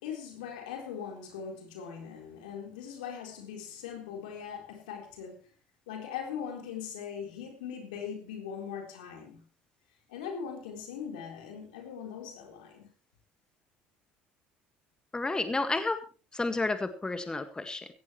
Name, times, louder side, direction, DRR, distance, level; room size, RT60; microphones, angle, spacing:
voice 1, 0.0-5.5 5.9-9.4 10.1-12.9, left 7 dB, 85° left, 4.0 m, -40 dB
voice 2, 15.1-16.0 16.3-17.9, left 3 dB, 20° left, 1.8 m, -31 dB
17.5 x 15.0 x 3.2 m
hypercardioid pair, 70°, 4 cm